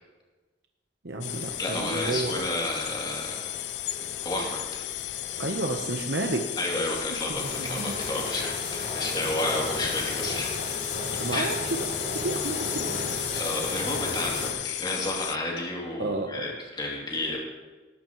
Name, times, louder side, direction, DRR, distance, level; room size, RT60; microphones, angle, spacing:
voice 1, 1.0-2.4 5.4-6.5 7.3-8.0 11.1-11.6 12.1-12.9 16.0-16.4, right 2 dB, 65° right, 3 dB, 1.0 m, -31 dB
sound 1, 1.2-15.4, left 15 dB, 65° left, 0.4 m, -35 dB
sound 2, 1.2-14.5, left 2 dB, 50° left, 3.5 m, -36 dB
voice 2, 1.6-3.5 4.2-4.6 6.6-10.6 11.3-11.5 13.3-17.4, left 2 dB, 25° left, -2 dB, 2.9 m, -31 dB
18.0 x 13.5 x 3.1 m, 1.3 s
head